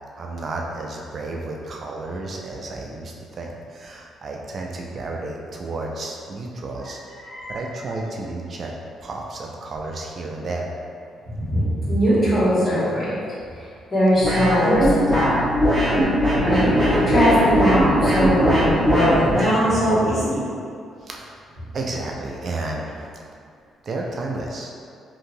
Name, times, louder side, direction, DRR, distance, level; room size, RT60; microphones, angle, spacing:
voice 1, 0.2-7.0 7.5-8.7 9.0-10.7 21.0-21.4 21.7-23.3 23.8-24.7, right 2 dB, 50° right, 0 dB, 0.3 m, -32 dB
voice 2, 6.8-7.6 11.2-13.1 13.6-15.5 16.4-20.4, equal, 35° left, -12 dB, 1.5 m, -21 dB
sound 1, 14.2-19.5, equal, 15° right, 1.1 m, -19 dB
2.8 x 2.6 x 2.6 m, 2.3 s
cardioid pair, 90°, 0 cm